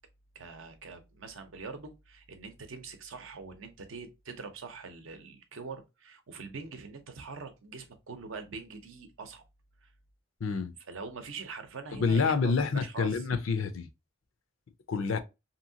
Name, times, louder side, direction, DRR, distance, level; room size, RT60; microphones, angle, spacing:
voice 1, 0.3-9.4 9.8-9.9 10.9-13.2, right 4 dB, 65° right, 0.6 m, -43 dB
voice 2, 10.4-10.7 11.9-13.9 14.9-15.2, left 5 dB, 70° left, 0.5 m, -28 dB
2.8 x 2.7 x 2.7 m
head